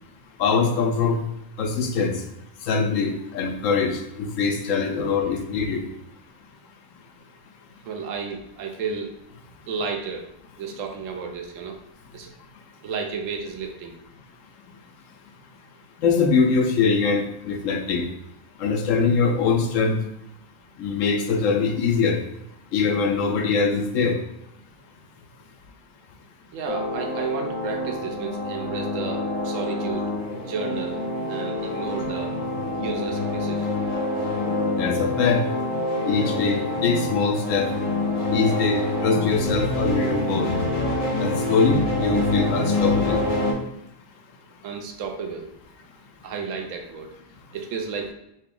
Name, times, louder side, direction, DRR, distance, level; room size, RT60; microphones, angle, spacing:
voice 1, 0.4-1.2 1.6-2.2 2.7-5.8 16.0-18.0 18.6-20.0 20.8-22.2 22.7-24.2 34.8-35.4 36.1-37.7 38.3-40.5 41.2-43.2, left 5 dB, 85° left, 4 dB, 1.0 m, -22 dB
voice 2, 7.8-9.1 9.7-10.3 10.6-11.8 12.1-12.3 12.8-13.9 26.5-30.1 30.4-31.0 31.3-32.4 32.7-33.7 44.6-45.5 46.2-47.1 47.5-48.1, right 5 dB, 85° right, 4 dB, 1.0 m, -32 dB
sound 1, 26.7-43.5, left 2 dB, 40° left, 0.5 m, -26 dB
2.9 x 2.7 x 3.7 m, 0.84 s
omnidirectional pair, 1.3 m